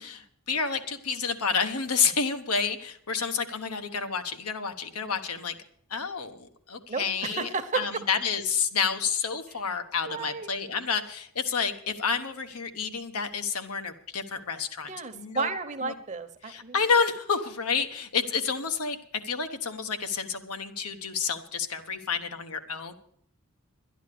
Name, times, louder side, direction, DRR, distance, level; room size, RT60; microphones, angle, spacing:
voice 1, 0.0-5.6 5.9-15.5 15.8-15.9 16.4-22.9, left 6 dB, 90° left, 7 dB, 1.1 m, -29 dB
voice 2, 6.9-7.8 10.1-10.5 14.8-16.7, right 4 dB, 35° right, 9 dB, 0.9 m, -32 dB
12.0 x 10.5 x 6.8 m, 0.63 s
head